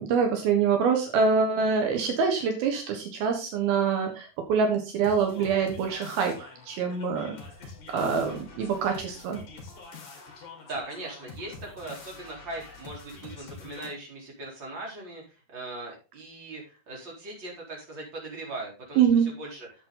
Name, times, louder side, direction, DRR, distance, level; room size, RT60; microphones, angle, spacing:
voice 1, 0.0-6.3 6.7-7.3 7.9-9.4 19.0-19.3, right 6 dB, 75° right, 4 dB, 3.2 m, -25 dB
sound 1, 5.0-13.9, left 4 dB, 55° left, 3.8 m, -46 dB
voice 2, 10.6-19.1 19.4-19.9, right 2 dB, 30° right, -2 dB, 4.4 m, -39 dB
10.5 x 7.9 x 3.8 m, 0.33 s
omnidirectional pair, 4.4 m